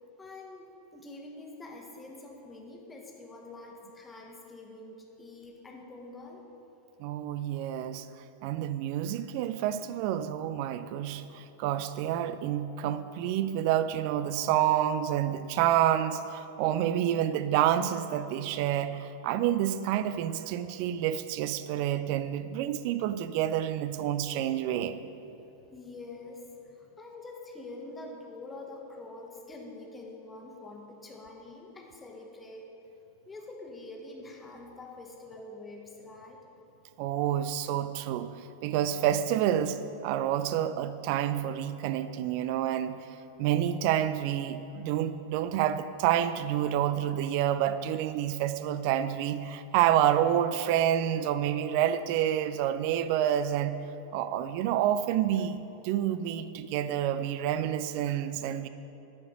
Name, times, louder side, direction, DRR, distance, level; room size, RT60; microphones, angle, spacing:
voice 1, 0.2-6.4 25.7-32.7 33.2-36.4, left 2 dB, 15° left, 0 dB, 1.3 m, -46 dB
voice 2, 7.0-8.1 8.4-25.0 37.0-43.0 43.4-53.8 54.1-58.7, right 11 dB, 45° right, 12 dB, 0.4 m, -28 dB
10.5 x 4.9 x 6.4 m, 2.9 s
figure-of-eight pair, 90°, 0 cm